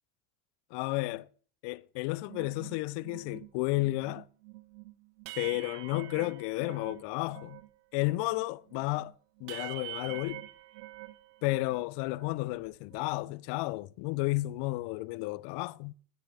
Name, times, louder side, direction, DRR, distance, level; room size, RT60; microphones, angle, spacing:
voice 1, 0.7-1.3 1.6-4.2 5.4-7.6 7.9-9.1 9.4-10.4 11.4-15.9, left 21 dB, 60° left, 0.6 m, -32 dB
sound 1, 2.3-7.7 8.0-11.9 12.1-13.3, right 17 dB, 80° right, 0.8 m, -46 dB
17.0 x 6.4 x 3.3 m
supercardioid pair, 100°, 47 cm